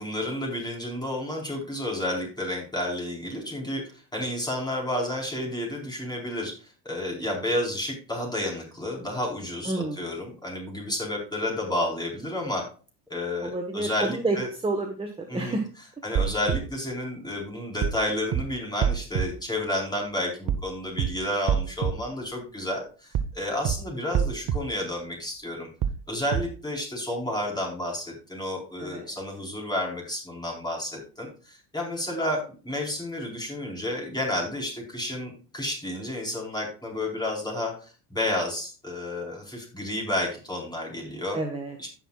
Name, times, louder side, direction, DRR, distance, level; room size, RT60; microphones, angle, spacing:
voice 1, 0.0-12.6 13.1-14.5 15.3-15.6 16.0-25.7 26.1-41.4 41.8-41.9, left 1 dB, 10° left, -1 dB, 4.3 m, -31 dB
voice 2, 9.6-10.0 13.4-14.4 14.6-15.6 28.8-29.0 41.3-41.8, right 2 dB, 10° right, 4 dB, 1.3 m, -29 dB
sound 1, 16.2-16.6 17.8-18.0 18.3-18.4 18.8-19.3 20.5-20.7 21.0-21.1 21.5-21.9 23.2-23.4 23.7-23.8 24.1-24.6 25.8-26.0 26.3-26.4, right 8 dB, 45° right, 0.9 m, -25 dB
15.5 x 5.8 x 2.4 m, 0.36 s
supercardioid pair, 100°, 47 cm